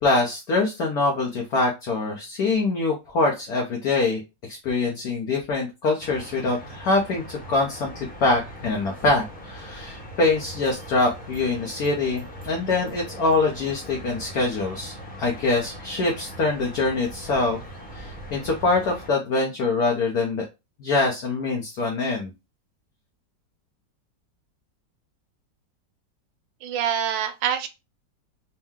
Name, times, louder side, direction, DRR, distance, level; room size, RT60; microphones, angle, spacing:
voice 1, 0.0-17.6 17.9-20.5 20.8-22.3, left 3 dB, 60° left, 0 dB, 1.3 m, -24 dB
sound 1, 6.0-19.1, equal, 5° left, 0.9 m, -40 dB
voice 2, 26.6-27.7, right 8 dB, 85° right, 9 dB, 1.4 m, -25 dB
4.5 x 2.2 x 3.6 m, 0.25 s
omnidirectional pair, 2.0 m